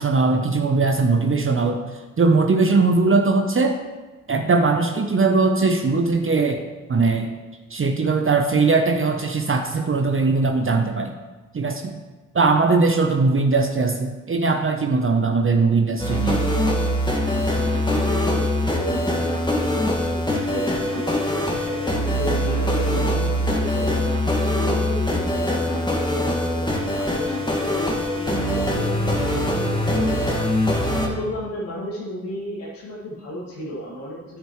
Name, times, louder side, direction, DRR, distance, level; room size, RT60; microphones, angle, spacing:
voice 1, 0.0-1.8 2.2-3.8 4.3-6.6 6.9-7.3 7.7-11.1 11.5-12.0 12.3-16.4, right 3 dB, 30° right, 4 dB, 0.8 m, -20 dB
sound 1, 16.0-31.1, left 1 dB, 10° left, 1.9 m, -23 dB
voice 2, 17.7-21.2 21.5-24.0 24.5-30.4 31.0-34.4, equal, 75° left, -7 dB, 2.3 m, -33 dB
9.3 x 8.2 x 3.2 m, 1.3 s
hypercardioid pair, 40°, 40 cm